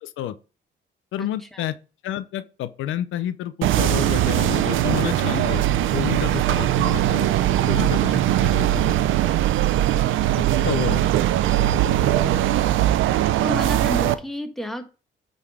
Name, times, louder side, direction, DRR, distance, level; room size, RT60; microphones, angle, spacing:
voice 1, 0.0-0.4 1.1-1.8 2.0-5.6 5.9-7.3 7.7-8.9 10.4-11.0, left 12 dB, 80° left, 0.6 m, -29 dB
sound 1, 3.6-14.2, right 13 dB, 85° right, 0.6 m, -20 dB
voice 2, 13.4-14.9, equal, ahead, 1.4 m, -31 dB
8.9 x 4.1 x 4.9 m
cardioid pair, 90°, 20 cm